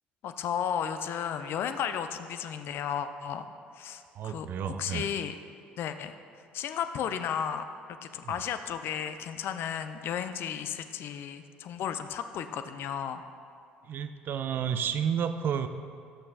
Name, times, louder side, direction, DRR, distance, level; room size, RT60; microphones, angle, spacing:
voice 1, 0.2-3.5 3.7-5.3 5.8-6.1 6.5-13.2, left 8 dB, 45° left, 9 dB, 0.4 m, -34 dB
voice 2, 4.1-5.1 8.2-8.4 13.9-15.7, right 8 dB, 40° right, 10 dB, 0.4 m, -31 dB
11.5 x 7.4 x 2.4 m, 2.4 s
figure-of-eight pair, 55°, 5 cm